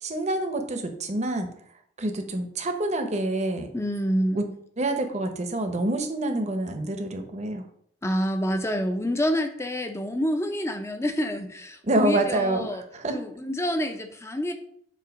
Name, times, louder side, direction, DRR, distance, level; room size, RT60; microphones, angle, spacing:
voice 1, 0.0-1.5 2.0-3.7 4.4-4.5 4.8-7.7 11.8-12.7 12.9-13.2, right 2 dB, 35° right, 6 dB, 0.7 m, -27 dB
voice 2, 3.7-4.4 8.0-12.8 13.1-14.5, equal, 15° left, 7 dB, 0.5 m, -27 dB
7.6 x 2.8 x 5.1 m, 0.67 s
head